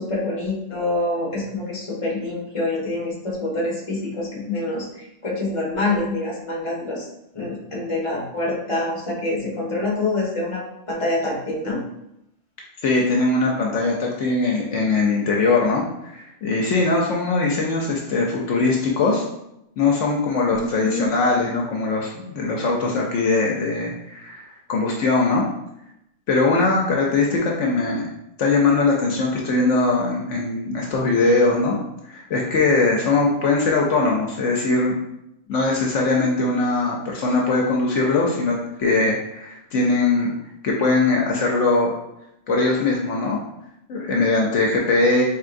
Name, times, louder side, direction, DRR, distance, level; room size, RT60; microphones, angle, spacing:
voice 1, 0.0-7.1 7.3-11.8 20.5-21.1, left 2 dB, 25° left, -4 dB, 1.1 m, -26 dB
voice 2, 12.8-19.2 19.8-25.4 26.3-28.1 28.4-31.8 32.1-35.0 35.5-40.3 40.6-41.9 42.5-43.4 43.9-45.2, left 3 dB, 70° left, -1 dB, 1.0 m, -21 dB
4.6 x 3.3 x 2.5 m, 0.83 s
omnidirectional pair, 1.3 m